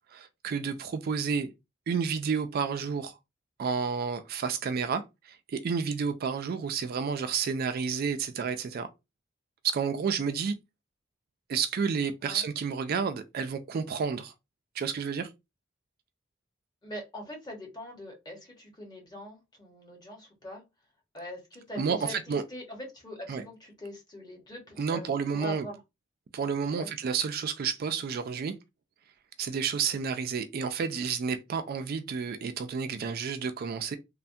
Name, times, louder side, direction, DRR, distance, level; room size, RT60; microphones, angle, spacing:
voice 1, 0.1-1.5 1.9-3.1 3.6-8.9 9.6-10.5 11.5-14.3 14.8-15.3 21.8-22.4 23.3-23.4 24.8-25.7 26.3-28.5 29.4-34.0, right 6 dB, 50° right, 0.3 m, -30 dB
voice 2, 16.8-20.6 21.1-25.8 26.7-26.9, left 1 dB, 20° left, 1.0 m, -43 dB
3.2 x 2.1 x 2.6 m
head